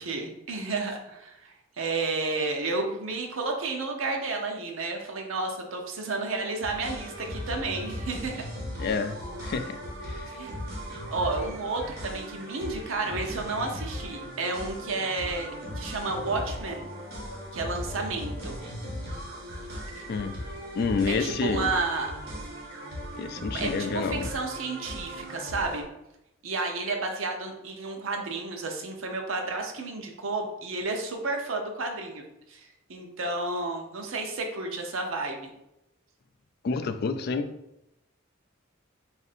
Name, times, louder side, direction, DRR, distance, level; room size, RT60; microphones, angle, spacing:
voice 1, 0.0-8.4 10.3-10.5 11.1-15.5 15.8-16.9 17.5-18.5 19.7-20.0 21.1-22.1 23.5-25.8 26.4-32.2 32.5-35.5, right 3 dB, 75° right, 2 dB, 0.7 m, -31 dB
sound 1, 6.6-25.8, equal, 50° right, 1.3 m, -38 dB
voice 2, 8.8-10.3 20.1-20.4 20.7-21.7 23.2-24.3 36.6-37.5, left 4 dB, 50° left, 8 dB, 0.3 m, -29 dB
3.5 x 2.6 x 4.1 m, 0.85 s
head